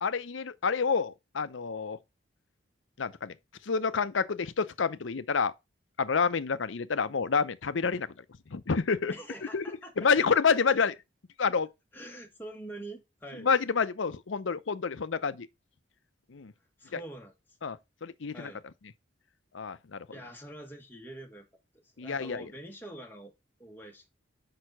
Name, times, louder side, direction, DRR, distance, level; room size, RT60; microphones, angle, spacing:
voice 1, 0.0-2.0 3.0-3.3 3.6-5.5 6.0-8.1 8.5-9.1 9.5-9.6 10.0-11.0 11.4-11.7 13.4-15.5 16.3-16.5 16.9-17.0 17.6-18.5 19.5-20.1 22.0-22.5, left 5 dB, 80° left, 0.6 m, -28 dB
voice 2, 9.1-9.9 11.9-13.5 16.8-17.3 18.3-18.6 20.1-21.5 21.7-23.3 23.6-24.1, right 1 dB, 10° left, 1.7 m, -45 dB
6.5 x 5.6 x 5.9 m
head